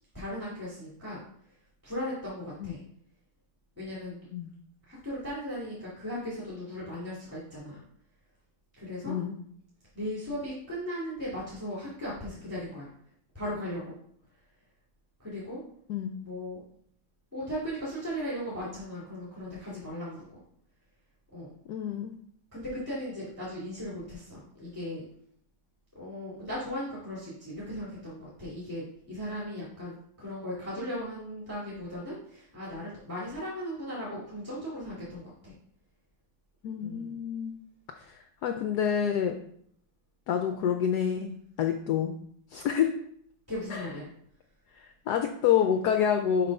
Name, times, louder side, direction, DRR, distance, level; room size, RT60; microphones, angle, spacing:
voice 1, 0.1-1.3 1.8-2.8 3.8-4.3 4.9-7.8 8.7-9.2 9.9-12.9 13.3-14.0 15.2-15.6 16.2-16.6 17.3-20.2 21.3-21.5 22.5-25.0 25.9-35.5 36.8-37.1 43.5-44.1, equal, 5° right, -8 dB, 2.3 m, -37 dB
voice 2, 9.0-9.4 15.9-16.2 21.7-22.1 36.6-37.6 38.0-39.3 40.3-42.1 42.5-42.9 43.7-43.9 44.7-46.5, left 8 dB, 70° left, 5 dB, 1.0 m, -28 dB
6.7 x 3.8 x 5.4 m, 0.66 s
omnidirectional pair, 2.1 m